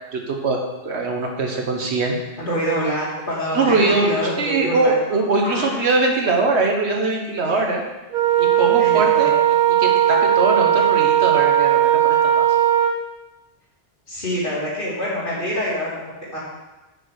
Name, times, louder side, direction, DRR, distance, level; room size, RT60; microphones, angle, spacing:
voice 1, 0.1-0.6 0.8-2.2 3.5-7.8 8.4-9.3 9.8-12.5, right 3 dB, 75° right, 1 dB, 1.4 m, -21 dB
voice 2, 2.4-5.0 5.4-5.8 7.4-7.6 8.8-9.3 14.1-16.0 16.3-16.4, equal, 50° left, -7 dB, 2.7 m, -26 dB
Wind instrument woodwind instrument, 8.1-13.0, right 11 dB, 45° right, 1.2 m, -17 dB
6.8 x 4.9 x 6.3 m, 1.1 s
omnidirectional pair, 1.1 m